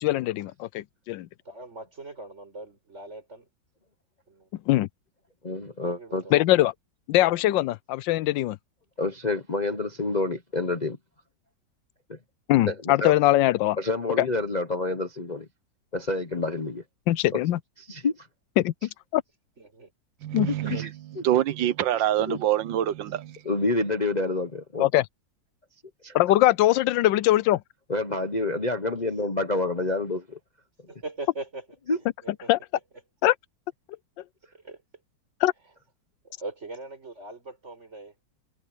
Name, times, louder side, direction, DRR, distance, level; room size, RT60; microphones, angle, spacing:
voice 1, 0.0-1.3 4.7-4.9 6.3-6.7 7.1-8.6 12.5-13.8 17.1-17.6 18.6-18.7 19.1-19.2 20.3-20.5 24.8-25.0 26.1-27.6 32.5-32.6 33.2-33.3 35.4-35.5, left 15 dB, 85° left, 1.3 m, -21 dB
voice 2, 1.5-3.5 4.3-4.5 5.8-6.4 7.5-7.6 19.6-19.9 28.9-29.1 30.9-31.7 32.2-32.5 34.5-34.8 36.2-38.1, right 2 dB, 40° right, 5.3 m, -40 dB
voice 3, 5.4-6.2 9.0-11.0 12.1-12.2 12.7-13.1 13.8-15.5 15.9-16.8 17.3-17.4 17.9-18.3 20.5-20.9 21.1-21.2 22.3-22.4 23.4-24.9 26.0-26.2 27.9-30.4 31.9-32.0, left 2 dB, 30° left, 1.0 m, -28 dB
voice 4, 20.2-23.7, right 12 dB, 90° right, 1.6 m, -26 dB
omnidirectional pair, 2.0 m